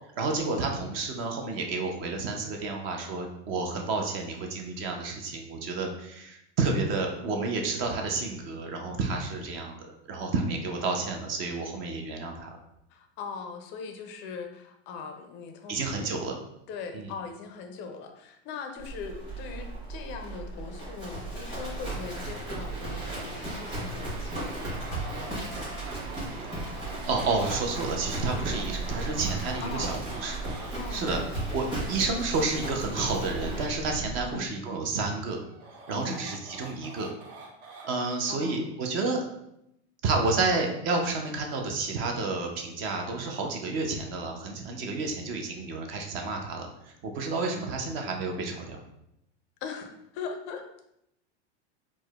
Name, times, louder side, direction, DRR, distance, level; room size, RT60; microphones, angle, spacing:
voice 1, 0.2-9.8 10.1-12.5 15.7-16.4 16.9-17.1 27.1-30.4 30.9-31.2 31.5-35.4 35.9-37.1 37.8-39.2 40.0-48.8, right 3 dB, 35° right, 2 dB, 0.5 m, -30 dB
voice 2, 12.9-16.1 16.7-25.9 29.6-30.0 30.7-31.2 34.2-34.6 35.9-36.2 38.0-38.6 49.6-50.6, left 5 dB, 35° left, 5 dB, 0.4 m, -40 dB
Livestock farm animals working animals, 18.8-34.3, right 2 dB, 15° right, 1.2 m, -35 dB
sound 1, 18.8-32.0, right 6 dB, 80° right, 0.6 m, -47 dB
sound 2, 24.2-30.7 35.3-37.9, right 3 dB, 55° right, 0.9 m, -46 dB
4.6 x 2.1 x 2.2 m, 0.80 s
supercardioid pair, 135°, 34 cm